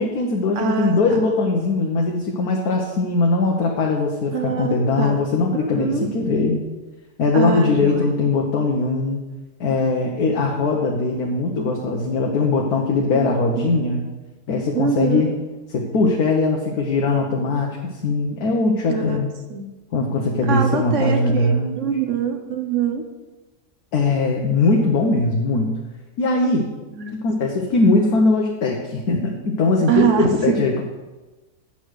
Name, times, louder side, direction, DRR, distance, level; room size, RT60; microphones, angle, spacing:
voice 1, 0.0-6.6 7.2-9.2 9.6-14.0 14.5-15.3 15.7-19.3 19.9-21.9 23.9-25.7 26.2-26.7 27.1-30.8, left 3 dB, 85° left, 0 dB, 1.5 m, -20 dB
voice 2, 0.5-1.2 4.3-5.2 5.5-6.1 7.3-8.1 13.1-13.9 14.7-15.3 18.9-19.2 19.5-19.7 20.4-23.0 26.9-27.1 29.9-30.6, right 6 dB, 60° right, 6 dB, 1.2 m, -24 dB
9.5 x 5.8 x 6.4 m, 1.2 s
omnidirectional pair, 1.6 m